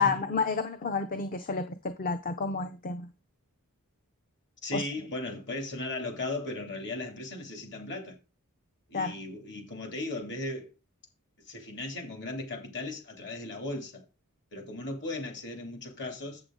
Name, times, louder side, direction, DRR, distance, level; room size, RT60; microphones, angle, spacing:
voice 1, 0.0-3.1 4.7-4.8 8.9-9.2, left 4 dB, 40° left, 0.7 m, -30 dB
voice 2, 4.6-8.2 8.9-10.6 11.5-14.0 14.5-16.4, left 2 dB, 55° left, 2.7 m, -37 dB
7.9 x 7.6 x 3.8 m
head